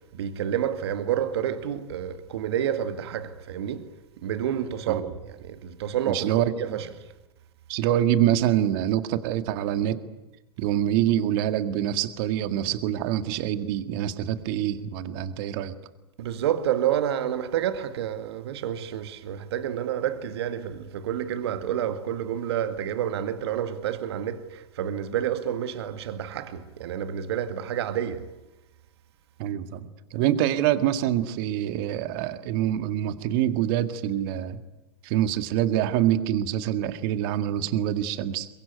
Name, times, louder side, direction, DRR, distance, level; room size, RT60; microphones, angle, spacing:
voice 1, 0.0-3.9 4.2-6.3 6.6-6.9 16.2-28.3, right 10 dB, 70° right, 1.9 m, -29 dB
voice 2, 6.1-6.8 7.7-10.0 10.6-15.8 29.4-34.6 35.0-38.5, right 11 dB, 55° right, 1.9 m, -25 dB
23.5 x 22.0 x 9.5 m
hypercardioid pair, 105°, 14 cm